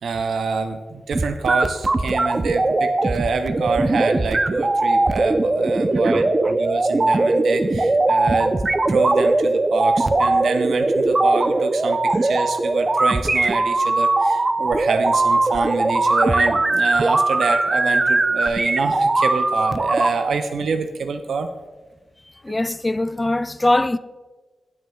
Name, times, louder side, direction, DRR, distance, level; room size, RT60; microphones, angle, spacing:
voice 1, 0.0-8.5 8.8-21.5, right 4 dB, 80° right, 0.5 m, -26 dB
sound 1, 1.1-20.1, right 2 dB, 35° right, 0.6 m, -20 dB
voice 2, 6.1-6.5 22.4-24.0, left 1 dB, 20° left, 0.3 m, -22 dB
16.5 x 6.3 x 2.3 m
cardioid pair, 55°, 0 cm